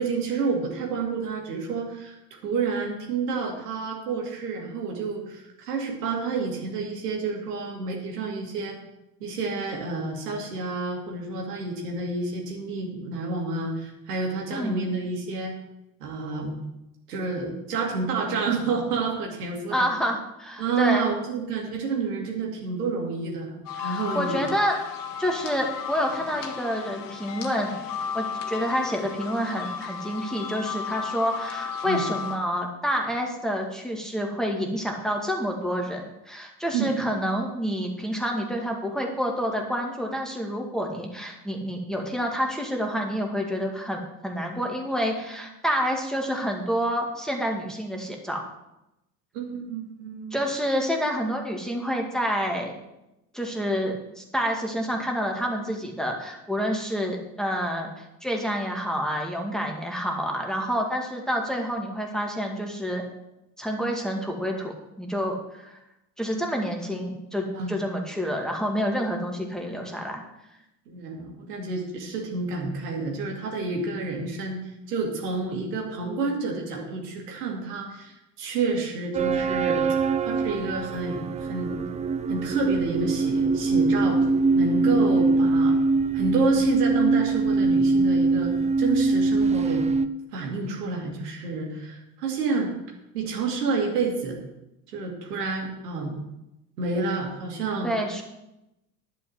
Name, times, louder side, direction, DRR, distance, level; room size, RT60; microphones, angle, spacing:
voice 1, 0.0-2.2 2.4-8.8 9.2-15.5 16.0-16.5 17.1-19.8 20.6-24.5 31.8-32.0 36.7-36.9 49.3-50.4 67.5-67.7 70.9-74.6 74.9-79.8 80.2-81.7 82.3-84.2 84.5-85.7 86.1-89.8 90.3-92.7 93.1-94.4 94.9-96.2 96.8-97.9, right 4 dB, 75° right, 0 dB, 2.5 m, -29 dB
voice 2, 14.5-14.8 19.7-21.1 23.8-24.8 25.2-27.8 28.1-48.4 50.3-52.7 53.3-63.0 63.6-65.8 66.2-70.2 97.8-98.2, equal, ahead, 1 dB, 2.1 m, -28 dB
sound 1, 23.7-32.4, left 7 dB, 45° left, 1.7 m, -34 dB
sound 2, 79.1-90.1, right 3 dB, 15° right, 0.5 m, -23 dB
11.0 x 5.5 x 7.9 m, 0.90 s
figure-of-eight pair, 65°, 47 cm